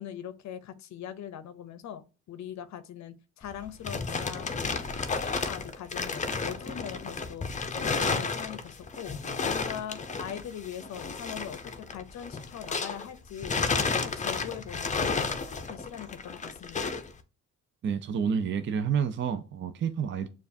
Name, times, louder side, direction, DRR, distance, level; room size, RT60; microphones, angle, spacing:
voice 1, 0.0-4.5 5.1-16.9, left 9 dB, 65° left, 0.6 m, -41 dB
sound 1, 3.5-13.1 13.4-17.1, left 4 dB, 25° left, 0.6 m, -32 dB
voice 2, 17.8-20.3, right 7 dB, 40° right, 0.5 m, -29 dB
6.6 x 2.4 x 2.6 m
cardioid pair, 90°, 30 cm